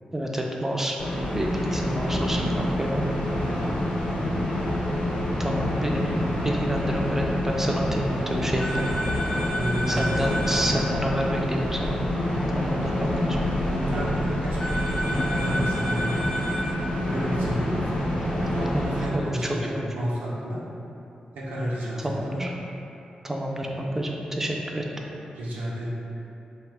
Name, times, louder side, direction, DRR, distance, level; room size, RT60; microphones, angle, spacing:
voice 1, 0.1-1.0 1.3-3.0 5.4-8.9 9.9-12.0 12.5-13.4 18.2-18.5 18.7-19.9 22.0-22.5 23.2-24.8, right 1 dB, 15° right, 0 dB, 0.4 m, -29 dB
sound 1, 1.0-19.1, left 1 dB, 70° left, 0.7 m, -27 dB
voice 2, 3.6-4.3 9.5-10.9 13.7-14.7 15.0-16.2 17.0-18.1 18.4-20.6 21.4-22.4 25.3-25.9, right 1 dB, 90° right, -7 dB, 0.4 m, -31 dB
sound 2, 8.6-10.7 14.6-16.7, equal, 20° left, 0.7 m, -31 dB
2.9 x 2.1 x 3.3 m, 2.9 s
cardioid pair, 55°, 3 cm